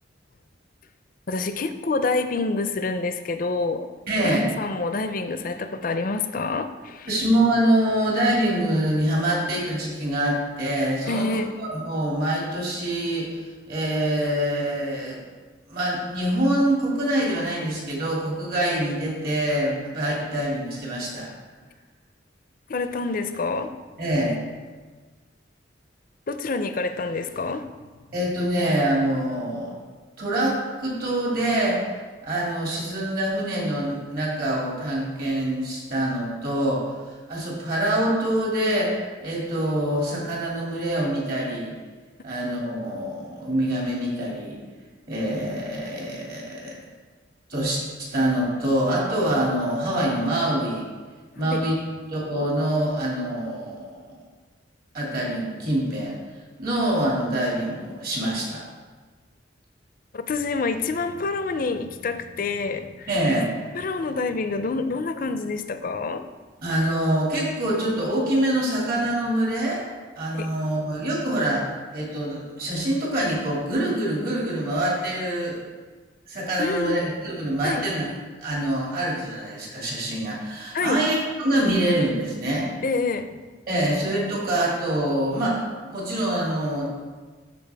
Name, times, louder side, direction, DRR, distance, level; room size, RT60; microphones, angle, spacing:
voice 1, 1.3-3.9 4.2-7.1 11.1-11.5 22.7-23.7 26.3-27.6 51.5-51.6 60.1-63.1 63.7-66.2 70.3-70.5 76.6-77.0 77.6-77.8 80.7-81.0 82.8-83.3, left 3 dB, 50° left, 9 dB, 0.5 m, -27 dB
voice 2, 4.1-4.5 7.1-13.4 13.7-15.2 15.7-21.3 24.0-24.4 28.1-29.7 30.2-31.8 32.2-41.7 42.2-44.6 45.1-46.7 47.5-50.8 51.4-51.8 52.1-54.0 54.9-56.2 56.6-58.6 63.1-63.5 66.6-69.8 70.2-71.7 71.9-75.6 76.3-78.1 78.4-82.7 83.7-86.9, right 1 dB, 50° right, -4 dB, 2.4 m, -25 dB
13.0 x 4.4 x 3.4 m, 1.4 s
head